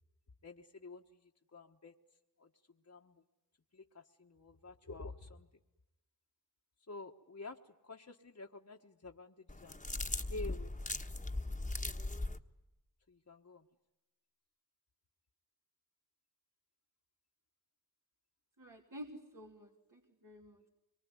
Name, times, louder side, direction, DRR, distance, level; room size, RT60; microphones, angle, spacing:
voice 1, 0.4-2.0 2.4-3.2 3.7-5.5 6.9-9.8 10.1-11.0 13.1-13.7, left 3 dB, 50° left, 1 dB, 1.4 m, -50 dB
sound 1, 9.5-12.4, left 2 dB, 20° left, 1.4 m, -39 dB
voice 2, 18.6-20.7, equal, 60° right, -1 dB, 3.2 m, -51 dB
25.0 x 23.5 x 9.7 m, 0.98 s
wide cardioid pair, 50°, 36 cm